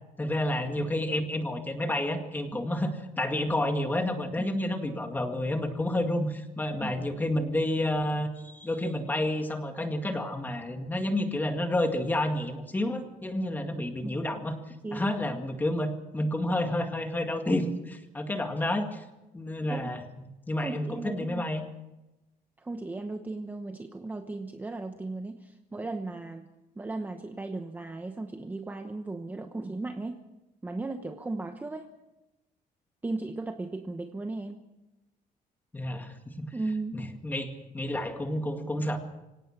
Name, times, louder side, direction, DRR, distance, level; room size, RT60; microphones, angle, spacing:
voice 1, 0.2-14.5 14.9-19.0 19.3-20.0 20.5-21.6 35.7-36.5 36.9-39.0, left 1 dB, 10° left, 5 dB, 2.0 m, -30 dB
voice 2, 20.6-21.4 22.6-26.5 26.8-30.2 30.6-31.9 33.0-34.6 36.5-37.0, right 2 dB, 10° right, 6 dB, 1.0 m, -36 dB
25.0 x 17.5 x 6.0 m, 0.99 s
cardioid pair, 170°, 15 cm